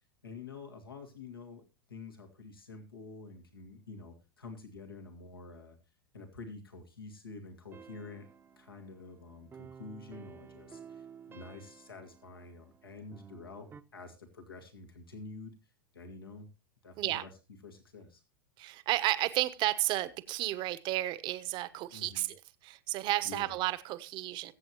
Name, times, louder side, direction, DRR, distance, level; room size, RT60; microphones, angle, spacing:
voice 1, 0.2-1.6 1.9-5.8 6.1-8.3 8.6-15.5 15.9-16.5 16.8-17.3 17.6-18.2 21.9-22.3 23.2-23.6, left 3 dB, 85° left, 2.2 m, -48 dB
sound 1, 7.7-13.8, right 7 dB, 20° right, 0.9 m, -53 dB
voice 2, 18.6-24.5, right 16 dB, 40° right, 1.1 m, -32 dB
22.0 x 8.1 x 3.0 m
figure-of-eight pair, 90°, 12 cm